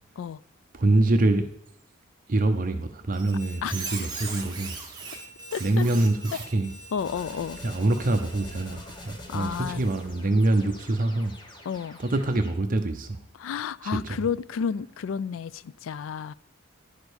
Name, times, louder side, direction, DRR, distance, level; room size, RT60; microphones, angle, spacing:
voice 1, 0.7-1.5 2.3-4.7 5.1-5.2 5.6-6.7 7.6-11.3 12.0-13.2 13.8-14.2, right 2 dB, 45° right, 6 dB, 0.7 m, -25 dB
Squeak, 3.1-9.1, right 4 dB, 20° right, 1.8 m, -40 dB
voice 2, 5.5-5.8 6.9-7.6 9.3-9.8 11.7-12.0 13.4-16.3, left 7 dB, 80° left, 19 dB, 0.3 m, -31 dB
sound 1, 7.0-12.5, left 1 dB, 25° left, 1.4 m, -44 dB
10.5 x 5.1 x 6.3 m, 0.74 s
head